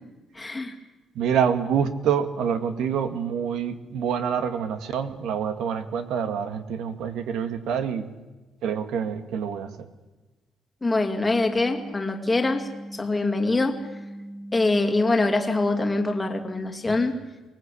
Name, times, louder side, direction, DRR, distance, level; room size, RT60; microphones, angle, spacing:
voice 1, 0.3-0.7 10.8-13.8 14.5-17.1, left 2 dB, 10° left, 4 dB, 2.3 m, -24 dB
voice 2, 1.1-8.1 8.6-9.9, right 7 dB, 75° right, 10 dB, 1.8 m, -26 dB
sound 1, 10.9-16.6, right 1 dB, 50° right, 4.5 m, -40 dB
24.0 x 19.5 x 8.5 m, 1.2 s
cardioid pair, 155°, 0 cm